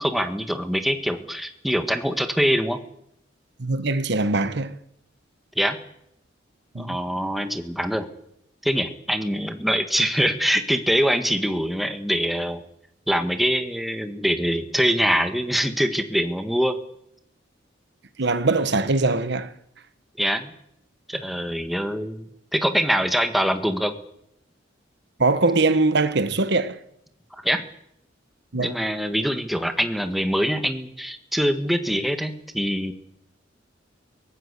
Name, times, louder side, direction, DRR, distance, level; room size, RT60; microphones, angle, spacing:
voice 1, 0.0-2.8 5.5-5.8 6.7-8.1 8.6-12.6 13.1-16.8 20.2-20.5 21.1-22.2 22.5-23.9 27.4-27.6 28.5-32.9, equal, ahead, 1.7 m, -24 dB
voice 2, 3.6-4.8 6.7-7.0 18.2-19.5 25.2-26.8 28.5-28.7, right 3 dB, 65° right, 1.3 m, -22 dB
23.0 x 18.5 x 8.3 m
head